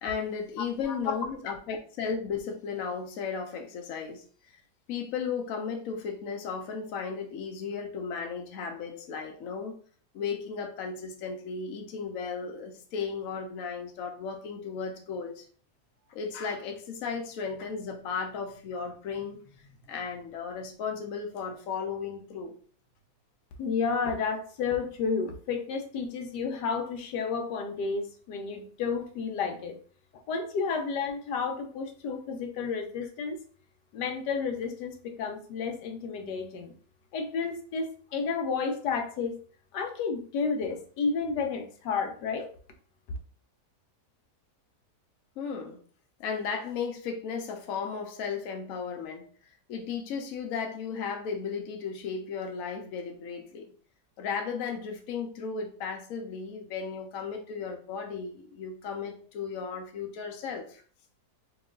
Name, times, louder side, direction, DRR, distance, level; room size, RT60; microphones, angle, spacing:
voice 1, 0.0-4.2 4.5-4.6 4.9-9.7 10.1-15.5 16.1-22.5 45.4-45.8 46.2-49.2 49.7-53.7 54.2-60.8, left 6 dB, 65° left, 1.0 m, -35 dB
voice 2, 0.8-1.1 23.6-29.8 30.1-33.4 33.9-36.7 37.1-39.4 39.7-42.5, left 5 dB, 85° left, 1.3 m, -31 dB
3.1 x 3.0 x 3.6 m
omnidirectional pair, 1.8 m